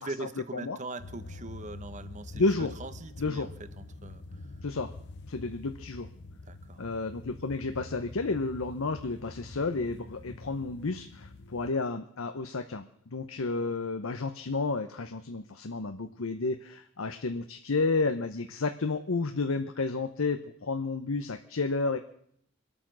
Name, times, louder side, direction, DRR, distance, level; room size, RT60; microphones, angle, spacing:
voice 1, 0.0-3.5 3.8-4.2 6.5-6.8, right 2 dB, 35° right, 12 dB, 0.9 m, -41 dB
sound 1, 1.0-11.7, left 2 dB, 55° left, 0.8 m, -46 dB
voice 2, 2.3-2.7 3.2-3.5 4.6-4.9 5.3-6.1 6.8-22.0, left 3 dB, 85° left, 7 dB, 0.8 m, -31 dB
24.5 x 8.8 x 6.2 m, 0.69 s
head